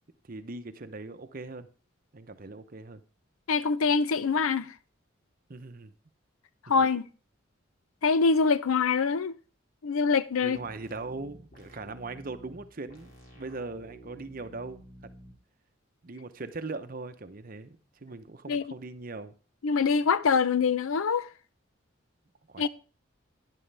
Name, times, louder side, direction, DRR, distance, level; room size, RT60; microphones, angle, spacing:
voice 1, 0.2-1.7 2.1-3.0 5.5-5.9 10.4-14.8 16.0-19.3 22.5-22.7, right 3 dB, 45° right, 0.8 m, -40 dB
voice 2, 3.5-4.7 6.7-7.1 8.0-9.3 9.8-10.6 18.5-18.7 19.6-21.3 22.6-22.7, left 5 dB, 90° left, 0.6 m, -24 dB
sound 1, 10.5-15.3, equal, 45° left, 2.6 m, -51 dB
11.5 x 9.9 x 3.4 m
head